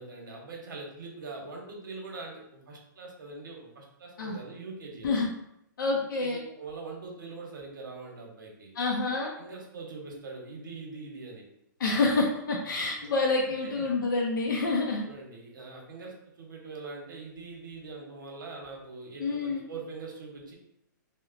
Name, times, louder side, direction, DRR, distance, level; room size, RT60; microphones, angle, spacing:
voice 1, 0.0-5.3 6.0-8.7 9.4-11.4 11.9-12.0 13.5-13.8 15.0-20.6, right 3 dB, 80° right, 0 dB, 0.8 m, -43 dB
voice 2, 5.8-6.4 8.7-9.3 11.8-15.0 19.2-19.6, left 3 dB, 80° left, -1 dB, 0.4 m, -27 dB
2.8 x 2.0 x 2.4 m, 0.78 s
hypercardioid pair, 160°, 11 cm